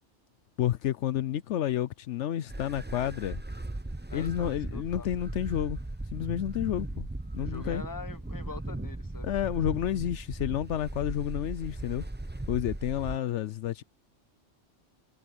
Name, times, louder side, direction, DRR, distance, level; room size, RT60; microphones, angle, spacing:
voice 1, 0.6-3.4 4.1-5.8 6.1-7.1 7.3-7.8 9.2-12.1 12.5-13.8, left 11 dB, 75° left, 0.9 m, -30 dB
sound 1, 2.5-13.2, right 2 dB, 10° right, 0.7 m, -37 dB
voice 2, 4.1-5.1 7.4-9.3 9.5-9.7, left 4 dB, 15° left, 1.2 m, -43 dB
omnidirectional pair, 1.3 m